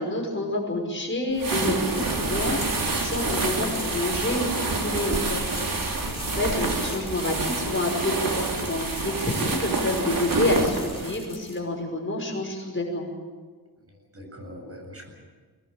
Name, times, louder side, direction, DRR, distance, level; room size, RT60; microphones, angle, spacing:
voice 1, 0.0-2.6 3.0-13.1, left 1 dB, 30° left, 0 dB, 5.5 m, -28 dB
sound 1, 1.3-11.2, right 3 dB, 55° right, 3.9 m, -28 dB
sound 2, 1.8-11.6, left 2 dB, 15° left, 5.1 m, -43 dB
voice 2, 13.9-15.1, equal, 35° right, 1 dB, 8.0 m, -42 dB
24.5 x 19.0 x 9.1 m, 1.5 s
wide cardioid pair, 115°, 39 cm